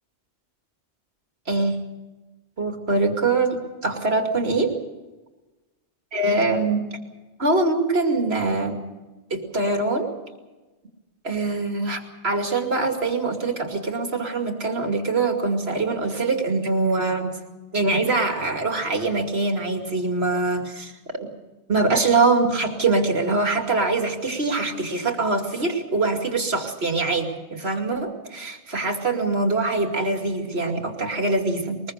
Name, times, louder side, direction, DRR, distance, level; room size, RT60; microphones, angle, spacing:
voice 1, 2.6-4.7 6.1-6.9 7.4-8.8 9.3-10.1 11.2-17.3 17.7-21.3 21.7-31.8, right 3 dB, 65° right, 4 dB, 2.7 m, -23 dB
22.5 x 21.0 x 6.6 m, 1.2 s
omnidirectional pair, 1.1 m